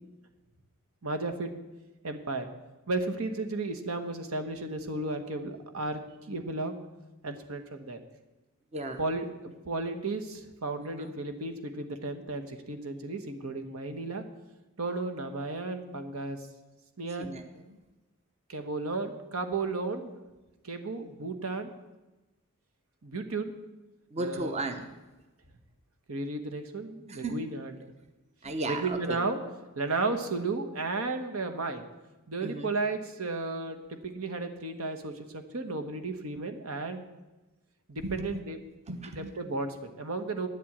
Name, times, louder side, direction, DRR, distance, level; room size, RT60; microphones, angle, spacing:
voice 1, 1.0-1.5 2.0-2.5 2.9-6.0 6.3-6.7 7.2-8.0 9.0-14.2 14.8-16.4 17.0-17.3 18.5-20.1 20.6-21.7 23.0-23.5 24.2-24.6 26.1-27.7 28.7-29.4 29.7-31.8 32.3-37.0 37.9-38.6 39.2-40.5, right 3 dB, 85° right, 7 dB, 1.3 m, -34 dB
voice 2, 8.7-9.0 10.8-11.1 17.2-17.8 24.1-25.0 27.1-27.4 28.4-29.2 32.4-32.7 38.0-38.4 38.9-39.3, right 2 dB, 30° right, 7 dB, 0.9 m, -35 dB
9.9 x 7.8 x 8.6 m, 1.1 s
head